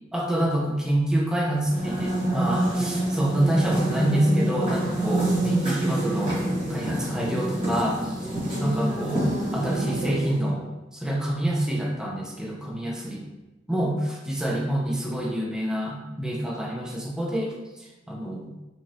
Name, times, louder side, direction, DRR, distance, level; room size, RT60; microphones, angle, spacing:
voice 1, 0.1-6.4 6.7-8.1 8.6-10.6 10.9-13.2 13.7-18.5, right 1 dB, 5° right, -3 dB, 0.4 m, -27 dB
sound 1, 1.6-10.5, right 1 dB, 30° right, 1.1 m, -27 dB
3.0 x 2.7 x 2.6 m, 1.1 s
head